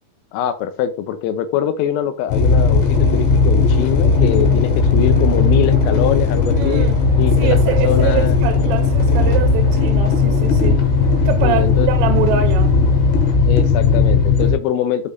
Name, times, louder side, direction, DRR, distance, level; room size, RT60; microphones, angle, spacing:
voice 1, 0.3-6.9 7.2-8.4 11.4-11.9 13.5-15.1, left 10 dB, 85° left, 3.4 m, -23 dB
sound 1, 2.3-14.5, left 4 dB, 70° left, 3.2 m, -16 dB
sound 2, 2.5-13.4, right 1 dB, 25° left, 2.4 m, -33 dB
voice 2, 6.6-7.0 7.4-10.8 11.3-12.8, right 9 dB, 85° right, 3.2 m, -24 dB
8.5 x 5.0 x 2.6 m
omnidirectional pair, 5.9 m